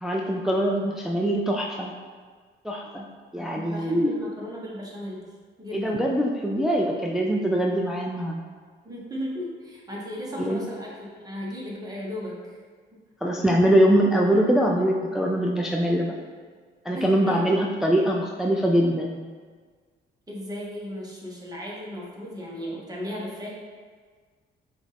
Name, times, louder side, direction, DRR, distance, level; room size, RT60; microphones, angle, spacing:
voice 1, 0.0-1.9 2.6-3.1 3.3-4.2 5.7-8.4 10.4-10.6 13.2-16.1 16.9-19.2, equal, ahead, -1 dB, 0.3 m, -23 dB
voice 2, 3.3-6.1 8.8-12.6 16.9-17.5 20.3-23.5, equal, 20° right, -4 dB, 1.2 m, -36 dB
5.0 x 2.5 x 3.4 m, 1.5 s
cardioid pair, 90°, 20 cm